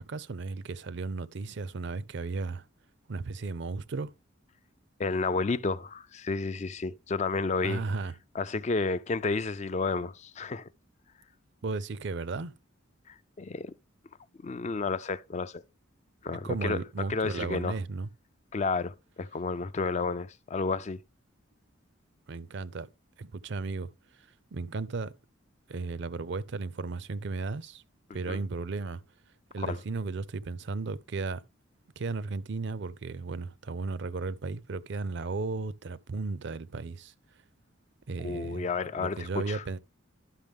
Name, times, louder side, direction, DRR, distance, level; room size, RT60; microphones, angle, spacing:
voice 1, 0.0-2.7 3.1-4.1 7.6-8.1 11.6-12.5 16.4-18.1 22.3-22.9 23.2-23.9 24.2-25.1 25.7-27.8 28.1-29.0 29.5-31.4 32.0-37.1 38.1-38.7 38.9-39.8, right 3 dB, 60° right, 0.5 m, -35 dB
voice 2, 5.0-7.8 8.3-10.7 13.1-13.7 14.4-15.6 16.2-16.8 17.1-17.7 18.5-21.0 28.3-28.4 29.6-29.8 38.2-39.6, left 4 dB, 35° left, 0.4 m, -31 dB
12.0 x 5.7 x 3.5 m
head